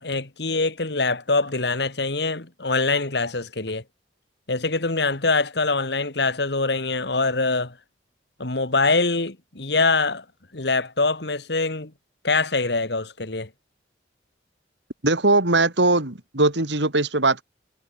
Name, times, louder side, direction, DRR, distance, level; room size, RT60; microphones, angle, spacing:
voice 1, 0.0-3.8 4.5-7.7 8.4-10.2 10.5-11.9 12.2-13.5, left 3 dB, 65° left, 2.1 m, -24 dB
voice 2, 15.0-17.4, right 2 dB, 80° right, 3.4 m, -20 dB
head